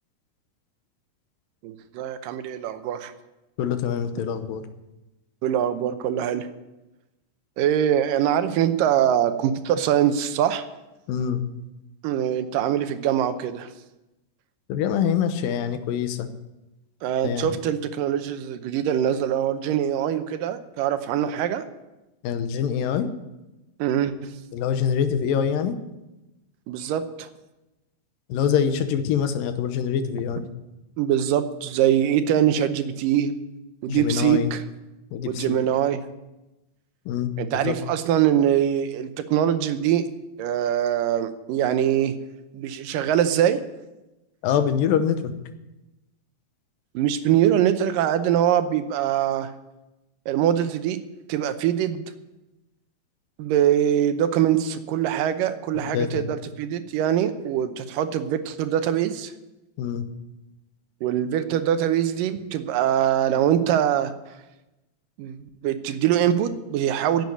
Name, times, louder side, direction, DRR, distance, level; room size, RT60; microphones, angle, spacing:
voice 1, 1.6-3.1 5.4-6.5 7.6-10.7 12.0-13.7 17.0-21.6 23.8-24.3 26.7-27.3 31.0-33.3 33.8-34.6 35.3-36.0 37.4-40.1 40.4-42.1 42.5-43.6 46.9-49.5 50.3-51.0 51.3-52.0 53.4-59.3 61.0-64.1 65.2-67.3, right 10 dB, 85° right, 10 dB, 2.4 m, -23 dB
voice 2, 3.6-4.6 11.1-11.4 14.7-16.3 17.2-17.5 22.2-23.1 24.5-25.8 28.3-30.4 33.9-34.5 35.1-35.6 37.1-37.7 44.4-45.3 55.7-56.3 59.8-60.1, left 8 dB, 90° left, 9 dB, 2.7 m, -25 dB
10.5 x 8.3 x 9.7 m, 1.0 s
omnidirectional pair, 3.9 m